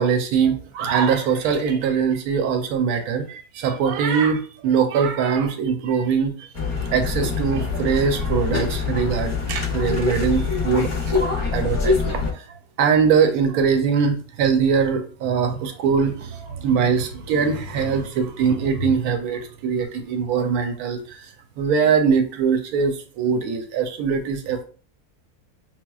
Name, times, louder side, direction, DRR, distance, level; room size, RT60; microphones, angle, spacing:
voice 1, 0.0-6.5 6.9-11.2 11.5-12.2 12.8-21.2 21.6-24.6, right 6 dB, 85° right, 6 dB, 1.1 m, -22 dB
sound 1, 6.5-12.3, left 4 dB, 40° left, 0.8 m, -24 dB
6.0 x 2.1 x 2.3 m, 0.40 s
omnidirectional pair, 1.5 m